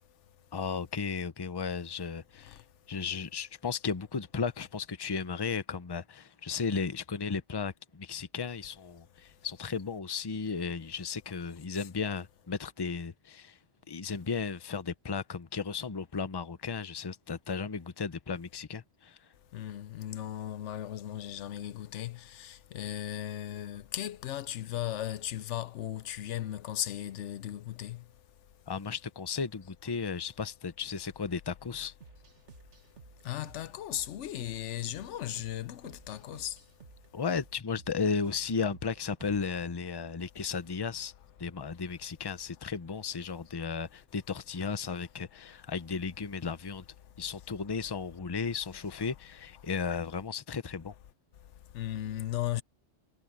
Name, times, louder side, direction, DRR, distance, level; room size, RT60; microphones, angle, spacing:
voice 1, 0.5-2.6 2.9-13.6 13.9-19.2 28.7-31.9 37.1-41.1 41.4-46.8 47.2-50.9, left 5 dB, 25° left, 0.7 m, -35 dB
voice 2, 19.5-28.1 33.2-36.6 51.6-52.6, left 12 dB, 85° left, 1.0 m, -36 dB
sound 1, 32.0-39.7, right 4 dB, 85° right, 2.0 m, -55 dB
omnidirectional pair, 1.2 m